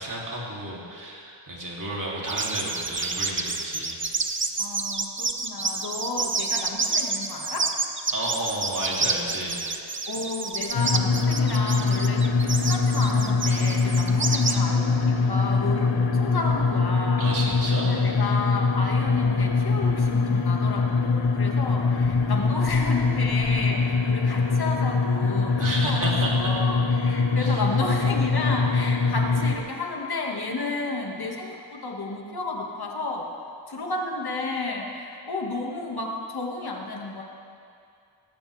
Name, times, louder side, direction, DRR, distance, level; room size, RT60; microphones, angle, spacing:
voice 1, 0.0-4.0 8.1-9.9 17.2-17.9 25.6-26.5 27.3-27.6, right 1 dB, 40° right, -4 dB, 3.0 m, -31 dB
sound 1, 2.3-14.6, right 4 dB, 25° right, 0.7 m, -29 dB
voice 2, 4.6-7.7 10.1-17.3 17.7-25.5 25.8-33.3 33.7-37.2, left 3 dB, 50° left, 0 dB, 2.0 m, -32 dB
sound 2, 10.7-29.6, left 4 dB, 65° left, 1.2 m, -23 dB
18.5 x 15.0 x 3.5 m, 2.4 s
wide cardioid pair, 120°, 47 cm